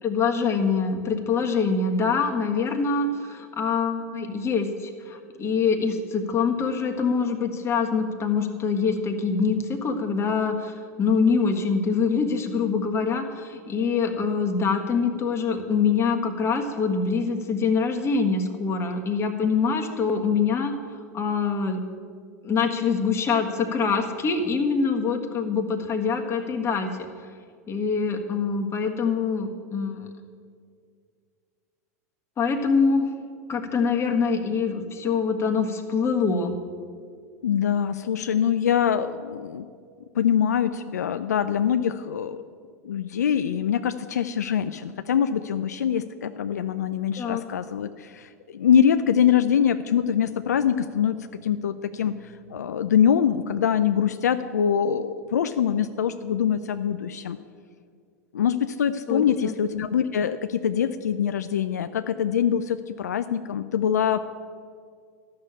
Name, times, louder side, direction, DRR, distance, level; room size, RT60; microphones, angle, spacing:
voice 1, 0.0-20.7 21.1-21.8 22.4-26.9 27.7-30.1 32.4-33.1 33.5-36.6 47.2-47.4 59.1-59.5, left 5 dB, 30° left, 4 dB, 1.5 m, -24 dB
voice 2, 37.4-39.7 40.1-42.4 42.8-57.4 58.3-64.3, left 8 dB, 85° left, 10 dB, 0.4 m, -24 dB
12.5 x 6.7 x 8.6 m, 2.1 s
hypercardioid pair, 95°, 9 cm